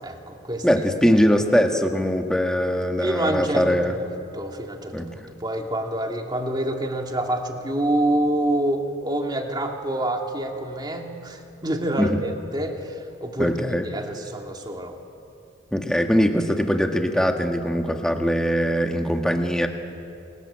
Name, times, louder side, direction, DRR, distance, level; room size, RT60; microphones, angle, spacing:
voice 1, 0.0-0.7 3.0-4.9 5.4-15.0, right 1 dB, 25° right, 3 dB, 2.5 m, -27 dB
voice 2, 0.6-3.9 4.9-5.1 12.0-12.2 13.4-13.9 15.7-19.7, equal, 5° left, 4 dB, 1.8 m, -21 dB
28.5 x 21.5 x 8.8 m, 2.6 s
head